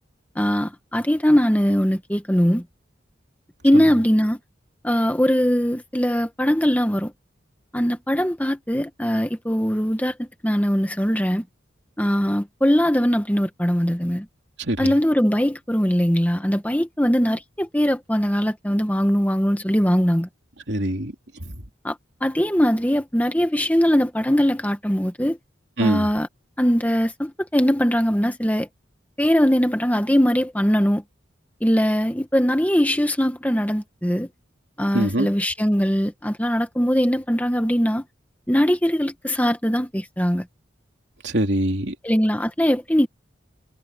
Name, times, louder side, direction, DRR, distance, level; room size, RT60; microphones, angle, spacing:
voice 1, 0.3-2.6 3.6-4.4 4.8-7.1 7.7-11.4 12.0-14.2 14.8-20.3 21.8-25.4 25.8-26.3 26.6-28.7 29.2-31.0 31.6-34.3 34.8-38.0 38.5-40.4 42.0-43.1, equal, 10° left, 1.6 m, -21 dB
voice 2, 14.6-14.9 20.7-21.1 25.8-26.1 34.9-35.3 41.2-41.9, right 1 dB, 65° right, 3.3 m, -23 dB
head